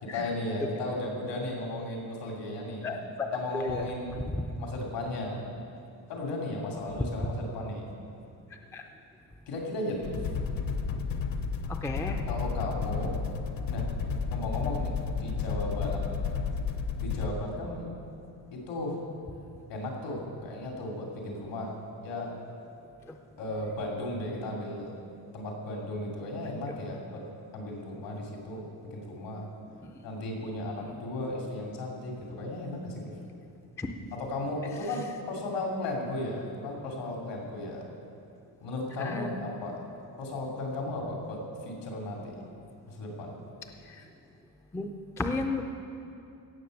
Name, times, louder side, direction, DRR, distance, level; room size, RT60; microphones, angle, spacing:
voice 1, 0.0-2.9 3.3-4.2 4.6-5.5 6.1-7.9 9.5-10.2 12.3-13.2 13.7-13.9 14.3-16.0 17.0-17.9 18.5-19.0 19.7-21.7 22.0-22.3 23.4-24.9 25.3-27.2 27.5-28.6 28.9-29.4 30.0-33.1 34.1-37.8 38.6-39.8 40.2-42.3 42.9-43.4, left 1 dB, 80° left, 0 dB, 3.1 m, -35 dB
voice 2, 2.8-3.3 3.5-3.9 4.3-4.4 8.7-8.8 11.7-12.2 23.1-23.2 29.8-29.9 30.9-31.0 33.8-33.9 39.0-39.3 44.7-45.6, left 3 dB, 5° left, 4 dB, 0.4 m, -33 dB
sound 1, 10.0-17.3, left 5 dB, 50° left, 0.9 m, -32 dB
16.5 x 7.3 x 6.6 m, 2.6 s
cardioid pair, 180°, 43 cm